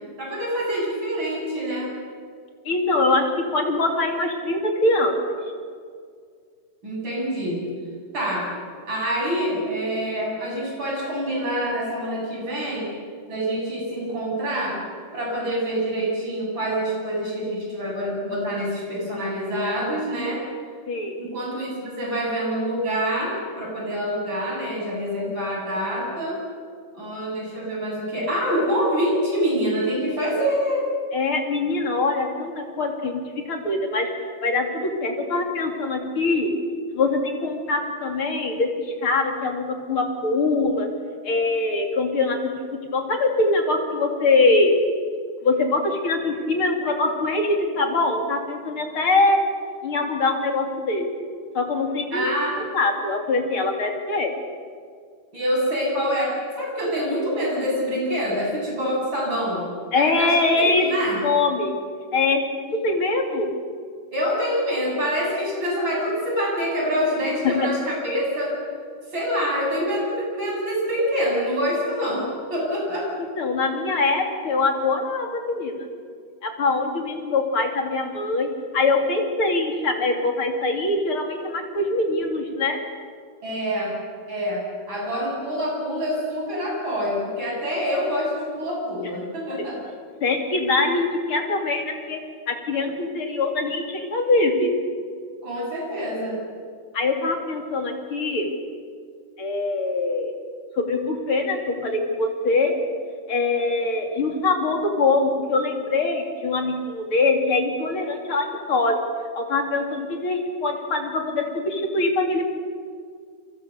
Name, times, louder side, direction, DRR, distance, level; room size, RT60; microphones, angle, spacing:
voice 1, 0.2-1.9 6.8-7.7 8.1-8.5 8.9-12.9 13.3-14.8 15.1-20.4 21.2-26.4 26.9-30.9 52.1-52.6 55.3-61.2 64.1-68.6 69.1-73.1 83.4-84.0 84.3-89.8 95.4-96.4, equal, 35° right, -2 dB, 8.9 m, -26 dB
voice 2, 2.7-5.4 20.9-21.2 31.1-33.2 33.5-34.1 34.4-36.5 36.9-40.9 41.2-42.4 42.9-44.8 45.4-49.4 49.8-51.1 51.5-52.2 52.7-54.3 59.9-60.9 61.2-61.7 62.1-62.4 62.8-63.5 67.4-67.5 73.4-75.9 76.4-82.8 90.2-92.2 92.5-94.7 96.9-98.5 99.4-100.3 100.8-102.8 103.3-109.0 109.4-112.5, left 3 dB, 45° left, 2 dB, 3.7 m, -23 dB
29.0 x 24.0 x 6.9 m, 2.1 s
omnidirectional pair, 3.6 m